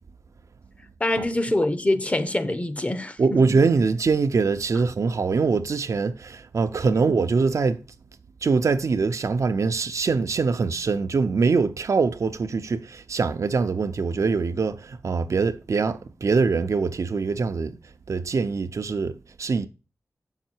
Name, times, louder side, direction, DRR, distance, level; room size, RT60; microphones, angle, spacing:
voice 1, 1.0-3.4 6.9-7.0, left 1 dB, 25° left, 0.7 m, -25 dB
voice 2, 3.2-7.8 8.4-17.8 18.1-19.7, right 4 dB, 75° right, 0.6 m, -23 dB
7.2 x 5.8 x 4.5 m
wide cardioid pair, 90°, 5 cm